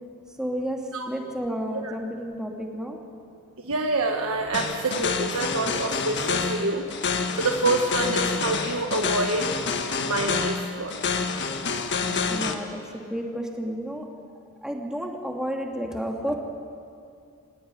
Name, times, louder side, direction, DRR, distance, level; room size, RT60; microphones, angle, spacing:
voice 1, 0.4-3.0 8.0-8.1 12.3-14.1 14.6-16.3, equal, 5° right, 1 dB, 2.6 m, -31 dB
voice 2, 3.6-9.5 10.0-11.1, right 2 dB, 70° right, 2 dB, 1.5 m, -27 dB
sound 1, 4.5-12.5, left 5 dB, 55° left, 1.6 m, -28 dB
26.0 x 16.5 x 9.9 m, 2.4 s
head